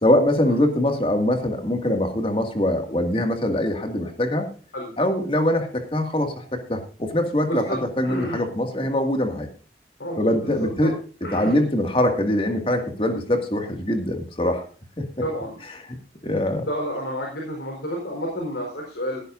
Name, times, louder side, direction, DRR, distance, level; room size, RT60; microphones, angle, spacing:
voice 1, 0.0-4.5 5.0-9.5 10.2-10.9 11.3-14.6 15.0-15.1 16.2-16.7, left 1 dB, 30° left, 5 dB, 2.1 m, -23 dB
voice 2, 7.4-8.4 10.0-10.9 11.2-11.6 15.2-15.6 16.7-19.2, equal, 85° left, 0 dB, 4.4 m, -30 dB
16.0 x 14.5 x 2.6 m, 0.38 s
head